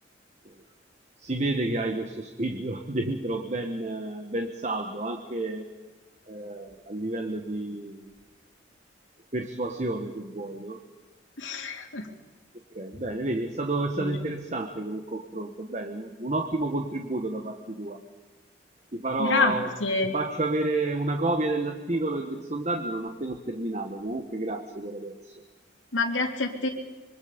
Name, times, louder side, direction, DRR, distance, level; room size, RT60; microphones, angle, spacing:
voice 1, 1.2-5.6 6.3-8.1 9.3-10.8 12.7-18.0 18.9-19.8 20.1-25.3, right 2 dB, 35° right, 5 dB, 1.4 m, -30 dB
voice 2, 11.4-12.1 14.0-14.2 19.2-19.6 19.8-20.1 25.9-26.7, left 3 dB, 85° left, 2 dB, 3.3 m, -26 dB
25.5 x 24.5 x 5.3 m, 1.3 s
head